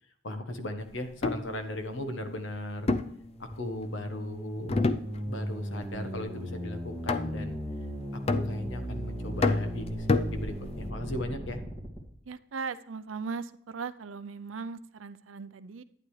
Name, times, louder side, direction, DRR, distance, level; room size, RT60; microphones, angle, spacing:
voice 1, 0.2-2.9 3.4-4.9 5.2-7.6 8.1-11.6, left 1 dB, 75° left, 7 dB, 1.3 m, -37 dB
sound 1, 1.1-1.5 2.9-3.9 4.7-5.5 5.8-6.2 7.1-7.6 8.3-8.9 9.4-10.9, left 3 dB, 30° left, 0.5 m, -29 dB
sound 2, 3.2-12.0, equal, 10° left, 2.3 m, -37 dB
voice 2, 12.3-15.8, right 5 dB, 85° right, 13 dB, 0.6 m, -38 dB
11.5 x 9.4 x 3.2 m, 0.71 s
head